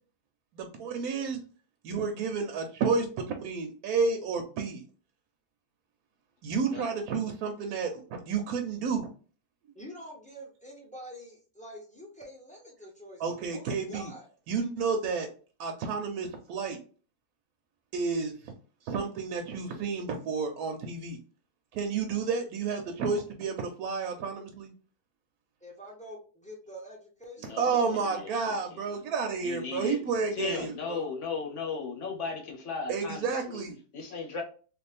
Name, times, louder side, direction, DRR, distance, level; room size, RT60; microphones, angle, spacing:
voice 1, 0.5-1.4 1.8-4.8 6.4-9.1 13.2-14.1 14.5-15.3 15.6-16.8 17.9-18.5 18.8-21.2 21.7-24.7 27.6-31.1 32.9-33.8, right 5 dB, 75° right, 1.0 m, -31 dB
voice 2, 9.7-14.3 25.6-28.2, equal, 10° left, 0.4 m, -46 dB
voice 3, 27.4-28.4 28.7-29.0 29.4-30.0 30.3-33.6 33.9-34.4, left 5 dB, 60° left, 0.9 m, -36 dB
3.2 x 2.5 x 3.3 m
omnidirectional pair, 1.7 m